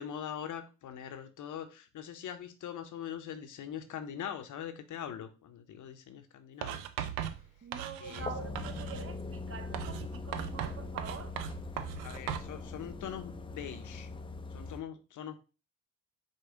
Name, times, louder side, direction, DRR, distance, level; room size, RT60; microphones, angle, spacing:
voice 1, 0.0-6.8 8.0-8.3 12.0-14.1 14.5-15.4, left 9 dB, 55° left, 0.7 m, -42 dB
Writing, 6.6-8.3 8.5-9.1 9.7-12.5, right 10 dB, 90° right, 0.5 m, -38 dB
voice 2, 7.6-11.4, right 6 dB, 40° right, 0.7 m, -45 dB
sound 1, 8.2-14.8, left 3 dB, 15° left, 0.4 m, -41 dB
4.9 x 2.2 x 3.7 m
supercardioid pair, 60°, 36 cm